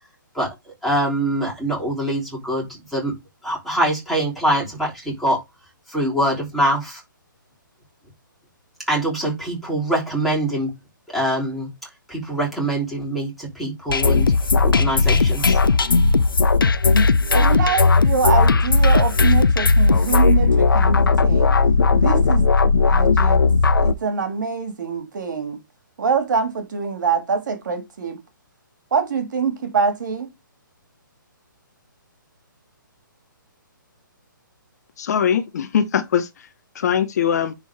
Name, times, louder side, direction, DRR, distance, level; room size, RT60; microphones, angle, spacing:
voice 1, 0.8-3.1 3.4-5.4 5.9-7.0 8.9-10.7 11.1-11.7 12.1-14.3 14.6-15.6, right 1 dB, ahead, 3.2 m, -24 dB
sound 1, 13.9-23.9, left 3 dB, 85° left, 0.7 m, -16 dB
voice 2, 17.3-21.5 21.9-22.5 22.9-23.4 23.8-25.6 26.0-28.2 28.9-30.3, right 5 dB, 60° right, 2.1 m, -24 dB
voice 3, 35.0-36.3 36.7-37.5, left 8 dB, 50° left, 0.9 m, -21 dB
10.5 x 3.8 x 3.5 m
hypercardioid pair, 145°, 11 cm